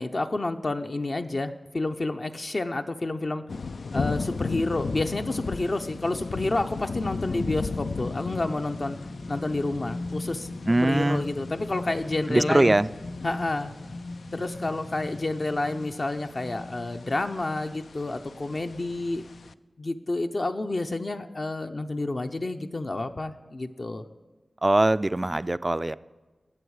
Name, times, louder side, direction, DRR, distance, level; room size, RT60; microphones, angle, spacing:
voice 1, 0.0-3.4 3.9-9.0 9.3-12.8 13.2-13.7 14.3-19.3 19.8-24.0, left 2 dB, 50° left, 6 dB, 0.6 m, -29 dB
sound 1, 3.5-19.5, left 4 dB, 85° left, 0.3 m, -37 dB
sound 2, 5.6-17.9 18.4-18.5, left 2 dB, 65° left, 2.5 m, -40 dB
voice 2, 10.7-11.3 12.3-12.9 24.6-26.0, right 1 dB, 25° right, 16 dB, 0.3 m, -22 dB
20.5 x 7.9 x 4.8 m, 1.2 s
wide cardioid pair, 85°, 0 cm